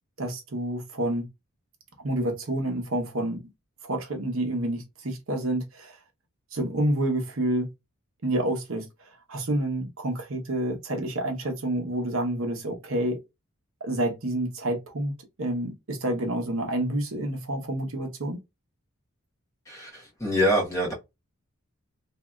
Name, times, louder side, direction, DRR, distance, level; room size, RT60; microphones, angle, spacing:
voice 1, 0.2-1.3 2.0-3.4 3.8-6.0 6.5-7.7 8.2-8.9 9.3-13.2 13.8-15.1 15.4-18.4, right 1 dB, 65° right, 0.9 m, -28 dB
voice 2, 19.7-20.9, equal, 15° left, 1.0 m, -25 dB
2.9 x 2.7 x 2.3 m
head